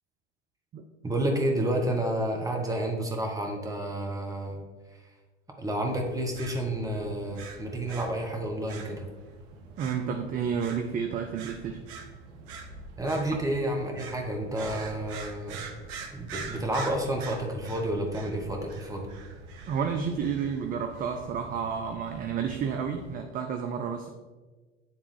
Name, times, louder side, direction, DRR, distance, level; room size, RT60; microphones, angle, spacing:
voice 1, 1.0-4.6 5.6-9.0 13.0-15.7 16.1-19.1, right 1 dB, 10° right, 1 dB, 1.2 m, -30 dB
sound 1, 5.9-23.2, right 4 dB, 55° right, 0.9 m, -44 dB
voice 2, 9.8-11.8 19.7-24.1, right 7 dB, 25° right, 5 dB, 0.4 m, -31 dB
9.6 x 3.5 x 3.3 m, 1.3 s
hypercardioid pair, 80°, 34 cm